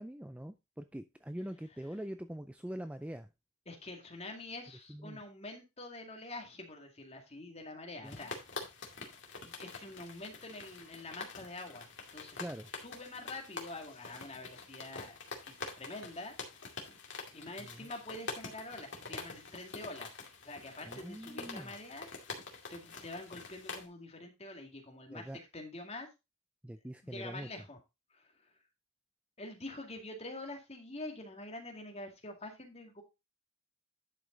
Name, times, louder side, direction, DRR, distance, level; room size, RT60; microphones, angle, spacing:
voice 1, 0.0-3.3 4.9-5.2 8.0-8.2 12.4-12.7 17.6-17.9 20.8-21.8 25.1-25.4 26.6-27.5, right 1 dB, 5° right, 9 dB, 0.4 m, -43 dB
voice 2, 3.7-8.3 9.4-12.5 12.8-15.2 15.4-16.4 17.3-20.1 20.4-22.1 22.7-25.3 25.5-26.1 27.0-27.8 28.1-28.2 29.4-33.0, left 2 dB, 30° left, 3 dB, 2.1 m, -46 dB
sound 1, 8.1-23.8, left 4 dB, 55° left, 2.3 m, -46 dB
11.0 x 5.2 x 3.8 m, 0.25 s
head